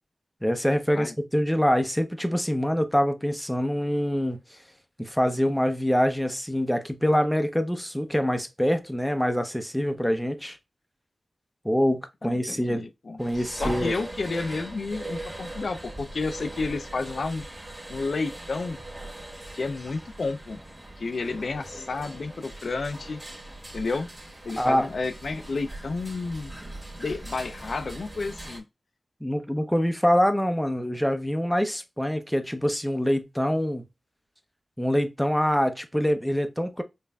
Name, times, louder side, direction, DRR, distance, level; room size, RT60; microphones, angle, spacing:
voice 1, 0.4-4.4 5.0-10.6 11.6-12.9 13.2-13.9 24.6-24.9 29.2-33.8 34.8-36.8, equal, 5° left, 0.5 m, -25 dB
voice 2, 12.2-17.5 17.9-18.8 19.5-20.6 21.0-23.2 23.7-24.1 24.4-26.5 27.0-28.6, left 3 dB, 75° left, 0.4 m, -31 dB
sound 1, 13.2-28.6, right 1 dB, 20° right, 1.5 m, -40 dB
5.3 x 2.5 x 2.2 m
wide cardioid pair, 95°, 0 cm